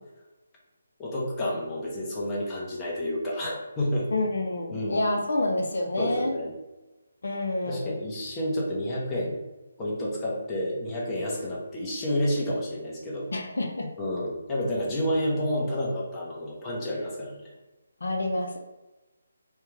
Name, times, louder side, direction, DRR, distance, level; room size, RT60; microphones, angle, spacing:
voice 1, 1.0-4.1 4.7-5.0 6.0-6.5 7.7-9.4 9.8-13.3 14.0-17.5, left 1 dB, 15° left, -5 dB, 0.8 m, -30 dB
voice 2, 4.1-6.3 7.2-7.9 13.3-13.9 18.0-18.6, left 2 dB, 70° left, 1 dB, 0.6 m, -28 dB
3.3 x 2.3 x 3.2 m, 1.1 s
figure-of-eight pair, 155°, 0 cm